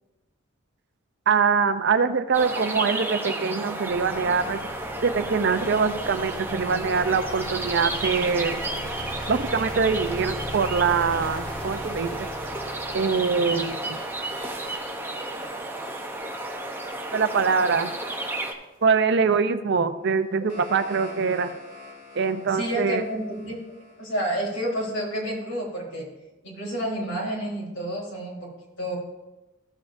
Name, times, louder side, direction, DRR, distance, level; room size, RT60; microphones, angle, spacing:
voice 1, 1.3-4.7 5.0-8.6 9.3-12.3 12.9-14.0 17.1-17.9 18.8-21.5 22.2-23.0, right 5 dB, 55° right, 10 dB, 0.5 m, -23 dB
sound 1, 2.3-18.5, right 2 dB, 10° right, 0.7 m, -32 dB
sound 2, 3.9-19.0, equal, 5° left, 3.3 m, -39 dB
sound 3, 20.1-25.1, left 3 dB, 40° left, 3.1 m, -45 dB
voice 2, 22.5-23.6 24.0-26.1 26.4-28.4 28.8-29.0, equal, 65° left, -4 dB, 3.6 m, -29 dB
14.5 x 7.4 x 2.6 m, 1.0 s
head